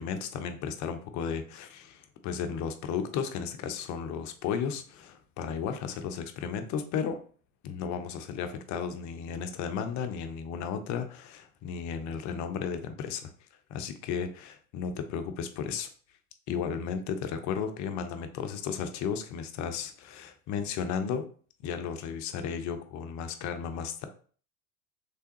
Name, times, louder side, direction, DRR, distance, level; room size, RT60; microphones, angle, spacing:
voice 1, 0.0-7.2 7.6-13.3 13.7-15.9 16.5-21.2 21.6-24.1, left 7 dB, 40° left, 8 dB, 0.6 m, -34 dB
3.4 x 3.4 x 2.9 m, 0.42 s
hypercardioid pair, 100°, 44 cm